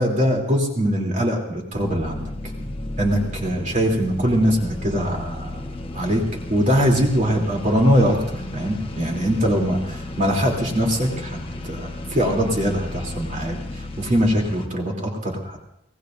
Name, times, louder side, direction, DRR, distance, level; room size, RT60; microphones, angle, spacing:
voice 1, 0.0-2.5 3.0-5.6 5.9-6.2 6.5-11.4 11.6-15.6, equal, 40° right, -1 dB, 3.2 m, -22 dB
sound 1, 1.7-14.7, left 2 dB, 30° left, 1.2 m, -33 dB
24.5 x 18.0 x 2.7 m, 0.78 s
head